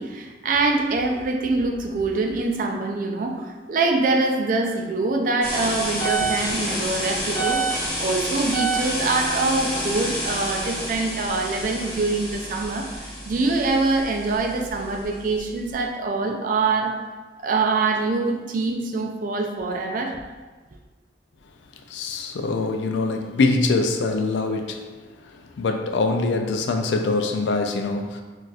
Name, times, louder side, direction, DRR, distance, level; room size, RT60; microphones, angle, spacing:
voice 1, 0.0-7.6 8.0-16.9 17.4-20.2, right 3 dB, 50° right, 2 dB, 0.4 m, -24 dB
sound 1, 5.4-15.8, right 1 dB, 15° left, 1.5 m, -29 dB
voice 2, 21.9-24.9 25.6-28.2, left 3 dB, 85° left, 5 dB, 0.3 m, -23 dB
4.0 x 2.4 x 2.4 m, 1.3 s
head